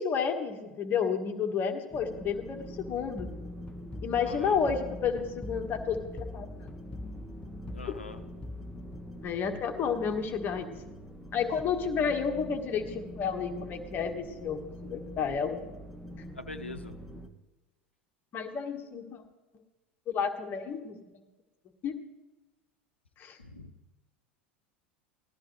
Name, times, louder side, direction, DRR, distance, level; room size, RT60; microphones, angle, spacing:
voice 1, 0.0-3.3 4.0-6.7 7.9-8.0 9.2-10.7 11.3-15.6 18.3-19.2 20.1-21.0 21.8-22.0 23.2-23.4, left 6 dB, 35° left, 5 dB, 1.5 m, -31 dB
sound 1, 1.9-17.3, equal, ahead, 1.3 m, -45 dB
sound 2, 3.2-9.8, left 2 dB, 15° left, 0.8 m, -44 dB
voice 2, 4.2-4.6 7.7-8.2 16.4-17.0 23.4-23.7, left 3 dB, 80° left, 9 dB, 0.9 m, -43 dB
19.5 x 13.0 x 3.2 m, 1.1 s
figure-of-eight pair, 80°, 6 cm